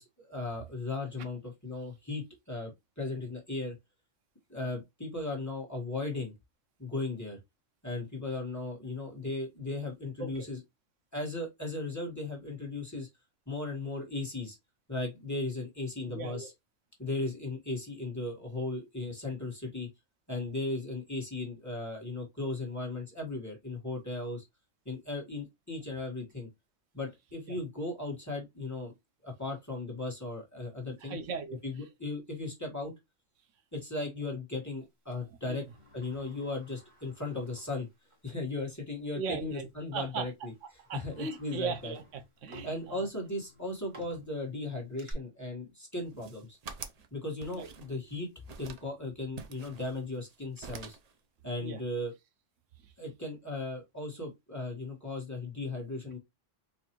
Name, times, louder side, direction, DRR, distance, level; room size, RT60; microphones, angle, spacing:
voice 1, 0.0-3.7 4.5-6.3 6.8-7.4 7.8-10.6 11.1-13.1 13.5-14.6 14.9-16.5 17.0-19.9 20.3-24.4 24.8-26.5 26.9-28.9 29.2-31.2 31.6-32.9 33.7-35.6 35.9-37.9 38.2-40.5 40.9-41.9 42.6-46.6 47.1-48.3 48.6-51.0 51.4-52.1 53.0-56.2, left 2 dB, 15° left, 1.4 m, -37 dB
voice 2, 16.1-16.5 27.5-27.6 30.9-31.8 35.5-35.6 39.2-40.3 40.8-43.1 47.5-47.7 51.6-51.8 52.8-52.9, right 5 dB, 85° right, 1.1 m, -38 dB
Sliding door, 35.1-38.3 38.7-38.8 39.7-39.9 40.4-45.1, right 1 dB, 25° right, 1.2 m, -56 dB
sound 1, 46.0-47.1 47.4-48.1 48.5-48.9 49.4-50.4 50.6-51.1, right 5 dB, 50° right, 0.4 m, -46 dB
4.2 x 2.6 x 2.9 m
omnidirectional pair, 1.3 m